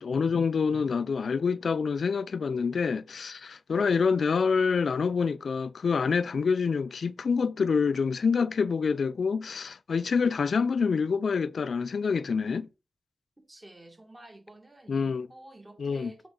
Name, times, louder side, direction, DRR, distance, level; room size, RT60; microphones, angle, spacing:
voice 1, 0.0-12.7 14.9-15.3 15.8-16.1, left 5 dB, 60° left, 0.3 m, -27 dB
voice 2, 13.5-16.3, right 1 dB, 25° right, 2.3 m, -50 dB
7.6 x 5.0 x 3.8 m
wide cardioid pair, 95°, 0 cm